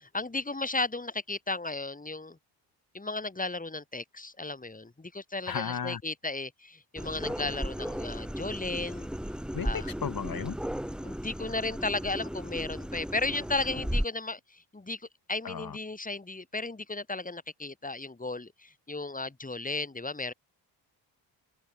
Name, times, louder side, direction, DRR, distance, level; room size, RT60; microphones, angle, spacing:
voice 1, 0.0-2.4 2.9-9.1 9.6-9.9 11.0-20.3, left 3 dB, 15° left, 7.2 m, -35 dB
voice 2, 5.5-6.0 7.2-7.3 9.5-10.6 15.4-15.8, left 7 dB, 45° left, 6.6 m, -35 dB
sound 1, 7.0-14.0, equal, ahead, 3.0 m, -35 dB
open air
supercardioid pair, 70°, 47 cm